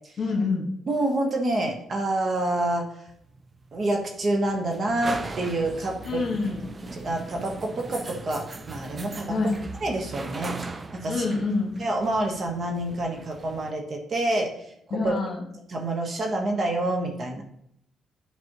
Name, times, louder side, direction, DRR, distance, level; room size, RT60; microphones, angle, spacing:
voice 1, 0.2-0.7 6.0-6.7 9.3-9.6 11.1-11.8 14.9-15.4, left 3 dB, 50° left, 2 dB, 1.7 m, -26 dB
voice 2, 0.9-2.9 3.7-6.2 6.9-9.4 9.8-10.6 10.9-11.2 11.8-14.5 14.9-15.1 15.7-17.4, right 1 dB, 50° right, 2 dB, 1.3 m, -27 dB
sound 1, 3.1-13.7, right 3 dB, 30° right, 0.5 m, -39 dB
7.9 x 5.3 x 3.1 m, 0.73 s
cardioid pair, 75°, 0 cm